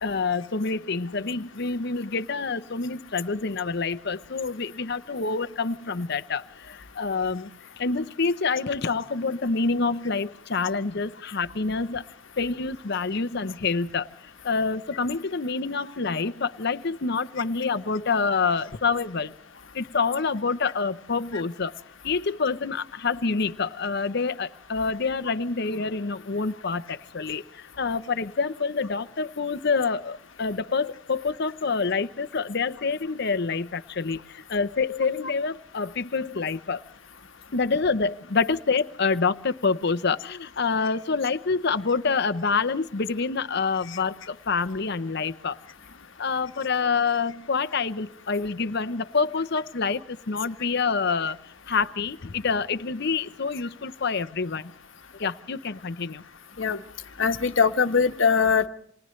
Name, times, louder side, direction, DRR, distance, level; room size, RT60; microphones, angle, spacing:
voice 1, 0.0-7.5 7.8-12.0 12.4-19.4 19.7-21.7 22.0-36.8 37.5-45.6 46.2-51.4 51.7-54.7 55.2-56.2, left 4 dB, 55° left, 0.8 m, -27 dB
voice 2, 57.2-58.7, left 5 dB, 70° left, 1.3 m, -21 dB
30.0 x 27.0 x 3.2 m
head